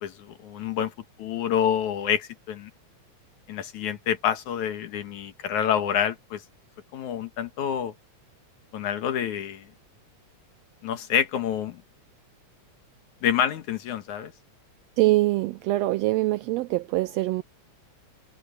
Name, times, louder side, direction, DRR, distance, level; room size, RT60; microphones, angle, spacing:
voice 1, 0.0-0.9 1.2-2.7 3.5-6.4 6.9-7.9 8.7-9.7 10.8-11.8 13.2-14.3, left 9 dB, 80° left, 3.0 m, -27 dB
voice 2, 15.0-17.4, right 18 dB, 80° right, 1.5 m, -23 dB
omnidirectional pair, 3.4 m